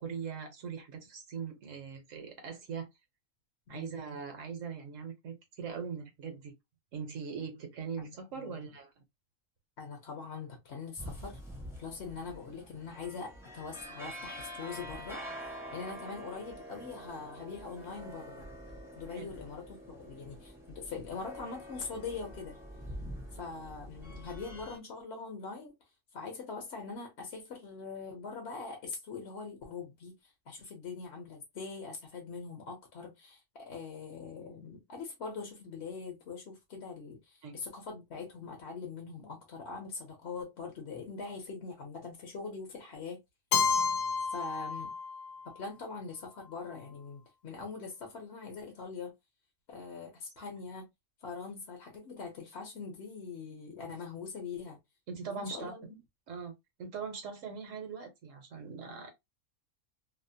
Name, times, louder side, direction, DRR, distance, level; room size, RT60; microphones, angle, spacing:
voice 1, 0.0-2.9 3.7-6.5 6.9-8.9 19.1-19.3 37.4-37.5 55.1-55.7 56.3-56.5 56.8-59.1, right 6 dB, 75° right, 1.2 m, -41 dB
voice 2, 8.0-8.6 9.8-11.4 11.8-15.2 15.7-18.5 19.0-22.5 23.3-25.7 26.1-30.1 30.5-43.2 44.3-44.9 45.5-49.1 49.7-50.9 51.2-54.8 55.2-55.9, left 5 dB, 60° left, 1.0 m, -42 dB
sound 1, 11.0-24.8, equal, 5° right, 0.6 m, -46 dB
Keyboard (musical), 43.5-45.4, left 5 dB, 85° left, 1.0 m, -30 dB
2.8 x 2.0 x 2.6 m
omnidirectional pair, 1.4 m